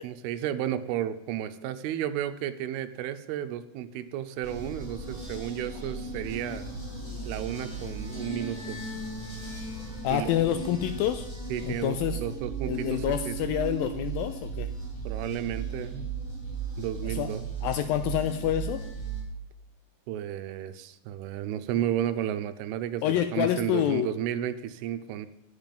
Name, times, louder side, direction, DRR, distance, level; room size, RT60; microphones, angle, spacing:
voice 1, 0.0-6.7 7.3-8.8 10.1-10.3 11.5-13.3 15.1-16.1 16.8-17.5 20.1-25.3, right 11 dB, 90° right, 11 dB, 2.6 m, -33 dB
sound 1, 4.4-19.2, right 4 dB, 10° left, 2.0 m, -36 dB
voice 2, 10.0-11.3 11.6-12.2 12.6-14.7 17.1-17.3 17.6-18.8 23.0-24.1, left 11 dB, 85° left, 9 dB, 2.1 m, -27 dB
9.2 x 8.1 x 5.2 m, 0.84 s
omnidirectional pair, 4.6 m